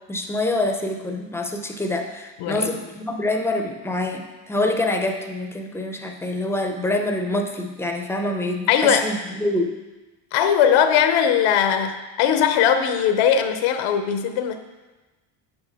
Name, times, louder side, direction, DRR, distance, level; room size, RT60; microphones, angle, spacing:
voice 1, 0.1-9.8, left 2 dB, 5° left, 3 dB, 0.5 m, -26 dB
voice 2, 2.4-2.8 8.7-9.1 10.3-14.6, left 8 dB, 80° left, 8 dB, 0.8 m, -19 dB
8.2 x 5.2 x 3.5 m, 1.2 s
cardioid pair, 120°, 49 cm